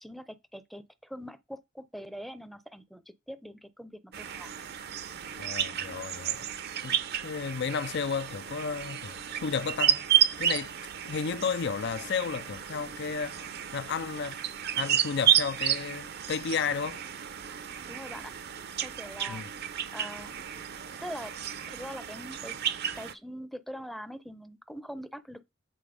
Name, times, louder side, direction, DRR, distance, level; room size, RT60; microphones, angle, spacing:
voice 1, 0.0-4.5 17.9-18.3 18.8-19.4 19.9-20.3 21.0-21.3 21.7-22.6 22.9-25.4, equal, ahead, 0.6 m, -43 dB
sound 1, 4.1-23.1, right 10 dB, 50° right, 0.7 m, -31 dB
voice 2, 5.4-6.5 6.8-10.1 10.4-10.8 11.0-14.4 14.7-17.0 19.3-19.5, left 6 dB, 55° left, 0.5 m, -33 dB
8.9 x 4.1 x 5.1 m
head